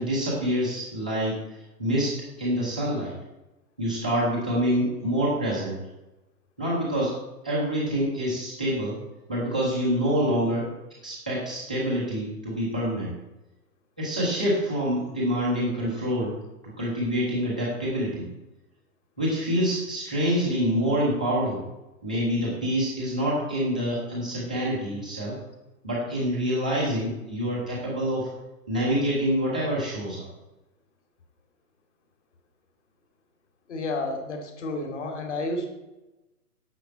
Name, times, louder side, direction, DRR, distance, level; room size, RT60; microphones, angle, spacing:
voice 1, 0.0-3.1 3.8-5.8 6.6-7.2 7.4-9.0 9.3-10.7 11.0-13.1 14.0-16.4 16.8-18.3 19.2-21.6 22.0-25.3 25.8-28.3 28.7-30.2, equal, 5° right, -9 dB, 0.7 m, -26 dB
voice 2, 33.7-35.7, left 2 dB, 45° left, 3 dB, 2.5 m, -31 dB
10.0 x 7.5 x 7.3 m, 1.0 s
hypercardioid pair, 180°, 47 cm